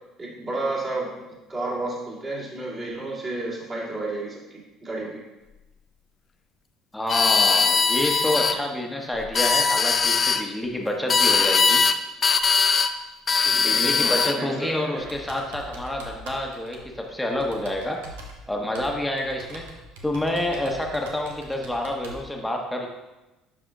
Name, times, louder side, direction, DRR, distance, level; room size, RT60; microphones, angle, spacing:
voice 1, 0.2-5.2 8.4-8.5 13.4-15.0, right 2 dB, 30° right, -6 dB, 2.5 m, -32 dB
voice 2, 6.9-11.8 13.6-18.0 18.5-19.7 20.0-22.9, left 1 dB, 5° left, 1 dB, 1.2 m, -28 dB
sound 1, 7.1-8.6 9.2-10.4 11.1-12.0 12.2-12.9 13.3-14.4, left 5 dB, 35° left, 0.4 m, -20 dB
Computer keyboard, 14.9-22.2, right 1 dB, 70° right, 0.8 m, -43 dB
11.0 x 4.8 x 2.5 m, 1.1 s
figure-of-eight pair, 55°, 0 cm